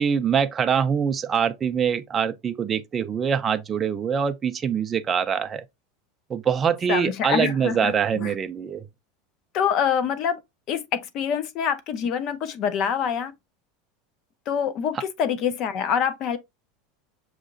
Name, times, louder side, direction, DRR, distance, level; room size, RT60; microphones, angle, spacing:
voice 1, 0.0-5.6 6.3-8.8, right 7 dB, 20° right, 0.4 m, -24 dB
voice 2, 6.9-8.3 9.5-10.4 10.7-13.3 14.5-16.4, left 7 dB, 35° left, 0.6 m, -25 dB
6.4 x 2.9 x 2.5 m
supercardioid pair, 170°, 0 cm